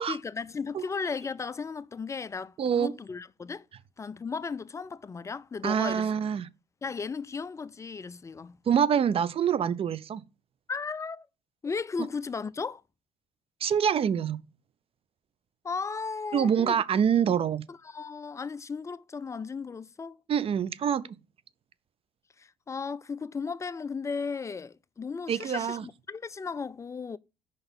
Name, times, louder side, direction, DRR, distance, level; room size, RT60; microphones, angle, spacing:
voice 1, 0.1-3.7 4.0-6.1 6.8-8.6 10.7-11.3 11.6-12.8 15.6-16.8 17.7-20.2 22.4-27.2, left 5 dB, 20° left, 0.4 m, -35 dB
voice 2, 2.6-2.9 5.6-6.5 8.7-10.2 13.6-14.4 16.3-17.6 20.3-21.0 25.3-25.8, right 8 dB, 40° right, 0.5 m, -25 dB
5.3 x 3.9 x 5.3 m
supercardioid pair, 75°, 14 cm